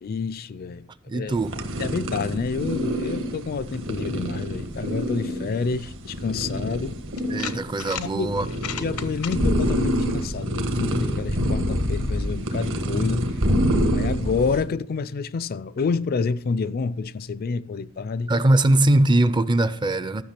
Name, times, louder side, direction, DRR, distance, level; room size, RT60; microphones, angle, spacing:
voice 1, 0.0-0.9 1.1-1.3 1.8-6.9 8.0-8.3 8.8-13.3 13.9-18.3, left 5 dB, 45° left, 0.4 m, -28 dB
voice 2, 1.1-1.6 7.3-8.5 18.3-20.2, right 1 dB, 20° right, 0.4 m, -21 dB
sound 1, 1.3-14.7, equal, 60° right, 1.5 m, -26 dB
sound 2, 7.2-8.1 8.5-9.4, left 9 dB, 90° left, 0.8 m, -34 dB
13.0 x 6.1 x 5.9 m
head